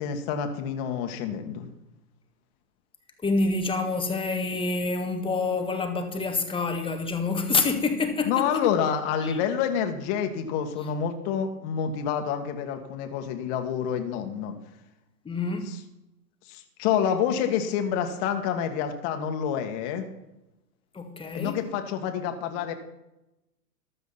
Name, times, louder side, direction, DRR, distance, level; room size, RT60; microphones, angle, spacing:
voice 1, 0.0-1.7 8.2-14.5 15.7-15.8 16.5-20.0 21.3-22.7, left 8 dB, 40° left, 5 dB, 1.9 m, -28 dB
voice 2, 3.2-8.6 9.2-9.4 15.2-15.7 20.9-21.6, left 3 dB, 10° left, 5 dB, 1.6 m, -27 dB
15.0 x 12.0 x 4.2 m, 0.93 s
hypercardioid pair, 120°, 49 cm